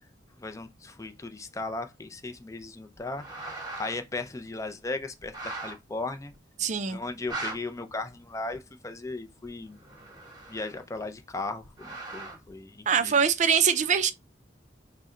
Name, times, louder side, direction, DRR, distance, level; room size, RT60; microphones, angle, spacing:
voice 1, 0.4-6.3 6.9-9.8 10.5-13.1, left 3 dB, 20° left, 0.4 m, -37 dB
sound 1, 3.0-4.0 4.5-4.6 5.2-5.8 6.3-6.4 7.1-7.6 8.5-8.6 9.4-11.0 11.6-12.5, right 2 dB, 25° right, 1.0 m, -39 dB
voice 2, 6.6-7.0 12.9-14.1, right 7 dB, 45° right, 0.4 m, -23 dB
4.0 x 2.1 x 3.6 m
head